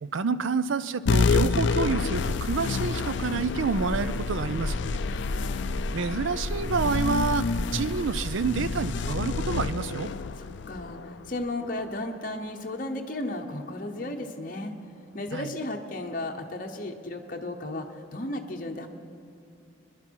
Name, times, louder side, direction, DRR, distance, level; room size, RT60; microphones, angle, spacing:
voice 1, 0.0-5.0 5.9-7.4 7.7-10.1 15.3-15.5, right 4 dB, 75° right, 14 dB, 0.5 m, -28 dB
sound 1, 1.1-11.9, left 4 dB, 60° left, 0.4 m, -29 dB
sound 2, 3.3-9.9, equal, ahead, 1.0 m, -35 dB
voice 2, 5.1-5.7 10.4-14.7 15.1-18.9, left 1 dB, 40° left, 2 dB, 0.9 m, -34 dB
21.0 x 11.0 x 4.6 m, 2.6 s
head